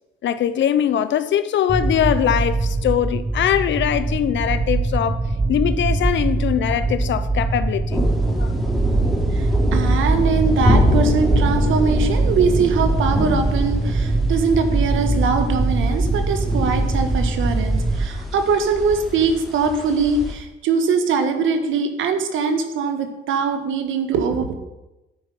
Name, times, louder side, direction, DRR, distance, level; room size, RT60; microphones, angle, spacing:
voice 1, 0.2-5.2 5.5-8.1 8.4-8.5, left 10 dB, 70° left, 0.9 m, -21 dB
sound 1, 1.7-18.1, right 2 dB, 30° right, 1.5 m, -22 dB
sound 2, 7.9-20.3, equal, ahead, 3.8 m, -24 dB
voice 2, 9.3-24.5, right 5 dB, 80° right, 1.6 m, -22 dB
11.0 x 9.0 x 5.4 m
cardioid pair, 90°, 20 cm